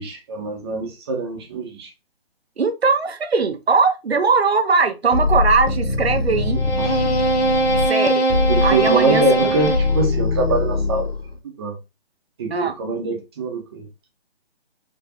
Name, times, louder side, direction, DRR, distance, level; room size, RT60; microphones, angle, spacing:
voice 1, 0.0-1.9 6.8-7.2 8.5-11.1 11.6-11.8 12.4-13.9, right 3 dB, 25° right, 0.8 m, -24 dB
voice 2, 2.6-6.6 7.9-8.2 8.6-9.2 12.5-12.7, right 4 dB, 85° right, 0.8 m, -19 dB
sound 1, 5.1-11.4, left 1 dB, 75° left, 1.2 m, -20 dB
4.5 x 2.4 x 2.8 m
figure-of-eight pair, 155°, 31 cm